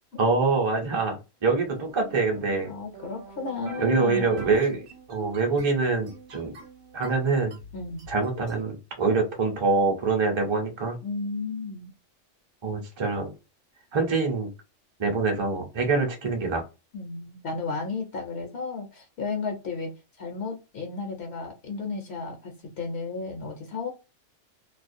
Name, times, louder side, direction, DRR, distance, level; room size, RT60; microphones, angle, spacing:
voice 1, 0.2-2.7 3.8-4.8 5.1-6.5 6.9-7.5 8.1-11.0 12.6-13.3 13.9-14.5 15.0-16.6, right 4 dB, 30° right, 0.5 m, -25 dB
sound 1, 1.7-8.6, right 4 dB, 60° right, 0.9 m, -44 dB
voice 2, 2.7-4.4 7.7-8.0 11.0-11.9 16.9-19.9 20.2-23.9, left 4 dB, 65° left, 0.8 m, -33 dB
2.4 x 2.0 x 2.5 m
omnidirectional pair, 1.3 m